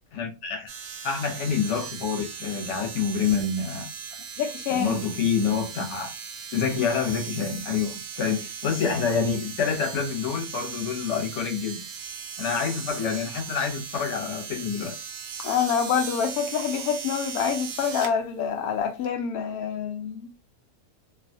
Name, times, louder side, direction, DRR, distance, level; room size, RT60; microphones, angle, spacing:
voice 1, 0.1-0.7 1.0-3.9 4.7-6.1 6.5-11.8 12.4-15.0, left 6 dB, 55° left, 1.1 m, -27 dB
sound 1, 0.7-18.1 19.0-19.1, right 7 dB, 70° right, 0.8 m, -38 dB
voice 2, 4.4-5.0 15.4-20.2, left 7 dB, 90° left, 1.1 m, -26 dB
2.7 x 2.3 x 2.6 m
omnidirectional pair, 1.5 m